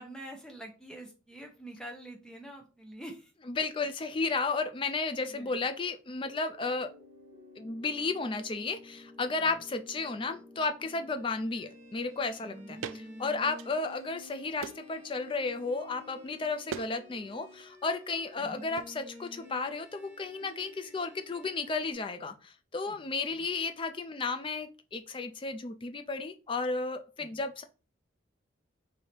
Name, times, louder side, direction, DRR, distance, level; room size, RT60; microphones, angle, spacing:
voice 1, 0.0-3.3 5.3-5.7 9.4-9.6 13.7-13.9 18.4-18.6 22.9-23.0 23.3-23.4 27.2-27.4, right 1 dB, 5° left, 1 dB, 0.7 m, -46 dB
voice 2, 3.5-6.9 7.6-27.6, left 3 dB, 25° left, 8 dB, 0.3 m, -33 dB
sound 1, 6.2-21.9, left 2 dB, 15° right, 1.2 m, -51 dB
sound 2, 12.8-13.0 13.5-14.1 14.6-15.0 16.7-16.9 17.2-17.7 18.8-18.9, right 7 dB, 80° right, 0.3 m, -41 dB
3.2 x 2.7 x 4.2 m, 0.34 s
head